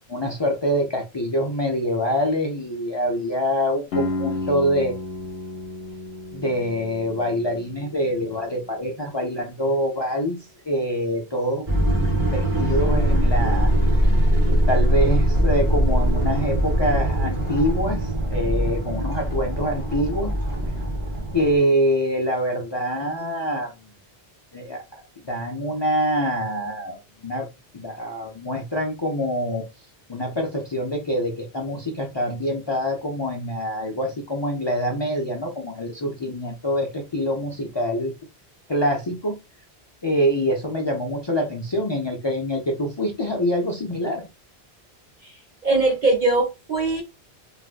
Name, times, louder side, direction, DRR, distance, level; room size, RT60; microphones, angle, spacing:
voice 1, 0.1-4.9 6.3-10.4 10.7-13.7 14.5-20.3 21.3-23.7 24.5-27.5 27.7-29.7 30.1-38.1 38.7-39.4 40.0-44.2, equal, 35° left, 1 dB, 0.4 m, -25 dB
sound 1, 3.9-9.7, left 2 dB, 80° left, 0.8 m, -33 dB
sound 2, 11.7-21.6, equal, 20° right, 1.1 m, -21 dB
voice 2, 45.6-47.0, right 2 dB, 50° right, -1 dB, 0.8 m, -21 dB
3.4 x 2.5 x 2.4 m, 0.26 s
omnidirectional pair, 1.0 m